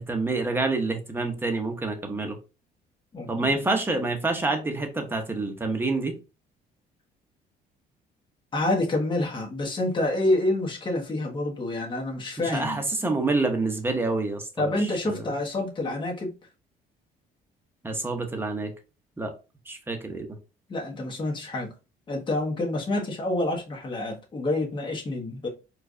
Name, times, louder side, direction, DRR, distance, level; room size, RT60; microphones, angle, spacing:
voice 1, 0.0-2.4 3.3-6.1 12.4-15.3 17.8-18.7 19.2-19.3 19.7-20.3, right 3 dB, 15° right, 0.9 m, -27 dB
voice 2, 3.1-3.5 8.5-12.8 14.6-16.3 20.7-21.7 22.1-25.5, left 2 dB, 30° left, 1.2 m, -27 dB
4.5 x 2.4 x 2.6 m
cardioid pair, 110°, 17 cm